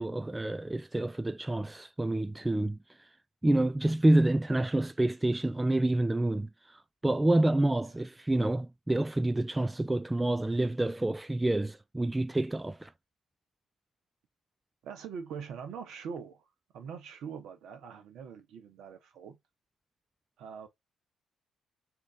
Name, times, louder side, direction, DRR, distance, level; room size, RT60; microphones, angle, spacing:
voice 1, 0.0-2.8 3.4-12.9, right 1 dB, 15° right, 0.3 m, -28 dB
voice 2, 7.7-8.0 14.8-16.5 16.7-19.4 20.4-20.7, right 6 dB, 65° right, 1.3 m, -43 dB
4.4 x 2.9 x 3.8 m
figure-of-eight pair, 45°, 0 cm